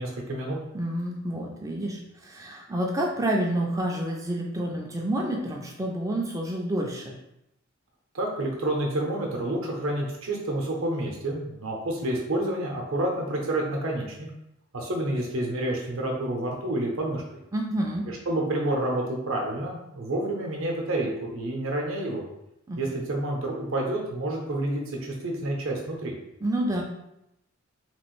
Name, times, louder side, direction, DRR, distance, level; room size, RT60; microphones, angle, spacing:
voice 1, 0.0-0.6 8.1-14.3 14.7-17.2 18.1-22.2 22.8-26.1, right 1 dB, 65° right, 0 dB, 0.7 m, -29 dB
voice 2, 0.7-7.1 17.5-18.1 22.7-22.8 26.4-26.8, right 1 dB, 15° right, 0 dB, 0.3 m, -29 dB
3.0 x 2.4 x 3.1 m, 0.84 s
head